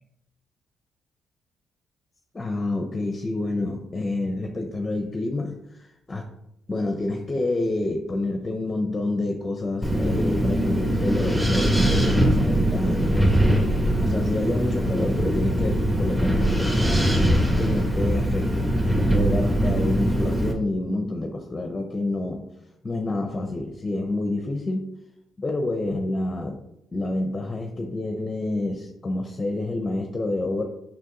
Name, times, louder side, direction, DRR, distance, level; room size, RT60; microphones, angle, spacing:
voice 1, 2.3-6.3 6.7-13.4 14.0-17.2 17.6-22.4 22.8-24.9 25.4-26.6 26.9-30.6, left 2 dB, 25° left, 4 dB, 0.8 m, -28 dB
Wind, 9.8-20.5, right 1 dB, 10° right, 1.7 m, -22 dB
6.6 x 6.0 x 3.9 m, 0.82 s
cardioid pair, 90°, 0 cm